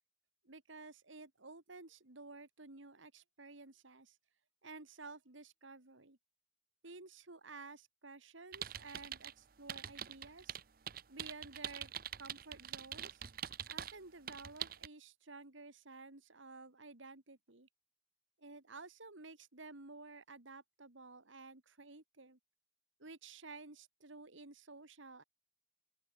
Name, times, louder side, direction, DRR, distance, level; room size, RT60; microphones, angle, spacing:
voice 1, 0.4-4.1 4.6-6.2 6.8-10.6 11.1-11.9 12.2-13.2 13.7-17.7 18.4-22.4 23.0-25.2, right 3 dB, 80° right, 2.4 m, -53 dB
sound 1, 8.5-9.3 9.7-14.0 14.3-14.9, right 10 dB, 45° right, 0.8 m, -44 dB
open air
head